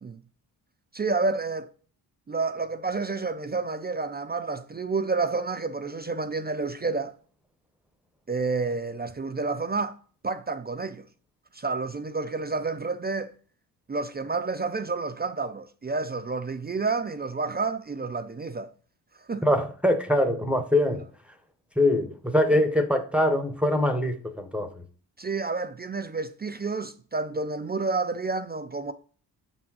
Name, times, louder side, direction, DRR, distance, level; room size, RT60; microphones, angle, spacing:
voice 1, 0.9-1.7 2.3-7.2 8.3-10.0 10.2-11.0 11.5-13.3 13.9-18.7 19.2-19.4 25.2-28.9, right 4 dB, 25° right, 0.4 m, -29 dB
voice 2, 19.4-21.1 21.8-24.7, left 1 dB, 5° right, 0.8 m, -23 dB
6.8 x 3.6 x 4.6 m
cardioid pair, 60°, 45 cm